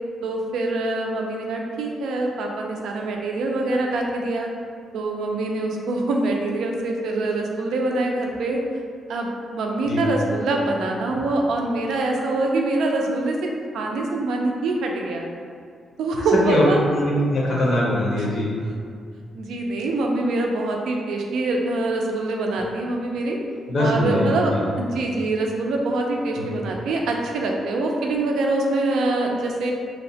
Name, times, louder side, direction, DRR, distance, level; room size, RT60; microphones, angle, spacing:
voice 1, 0.2-4.5 4.9-8.6 9.1-15.3 16.0-16.8 19.3-23.4 23.8-29.7, right 2 dB, 80° right, 1 dB, 0.3 m, -24 dB
voice 2, 16.2-16.7 16.9-18.5 23.7-24.6 26.3-26.4, left 1 dB, 55° left, -5 dB, 0.5 m, -22 dB
2.7 x 2.1 x 2.6 m, 2.2 s
wide cardioid pair, 155°, 0 cm